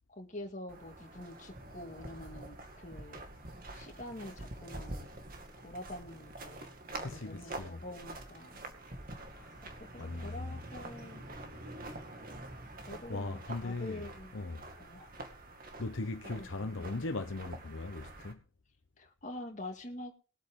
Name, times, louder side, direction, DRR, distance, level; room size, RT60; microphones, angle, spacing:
voice 1, 0.1-3.2 3.7-5.2 5.6-6.7 7.0-8.6 9.6-11.3 12.8-14.3 14.8-15.1 16.4-17.0 19.0-20.1, left 1 dB, 35° left, 2.1 m, -46 dB
sound 1, 0.7-18.3, right 2 dB, 45° right, 2.2 m, -47 dB
voice 2, 7.0-7.8 9.2-9.6 10.0-10.6 13.1-14.1 14.3-14.7 15.8-18.4, left 2 dB, 75° left, 0.9 m, -39 dB
21.5 x 8.2 x 3.8 m
head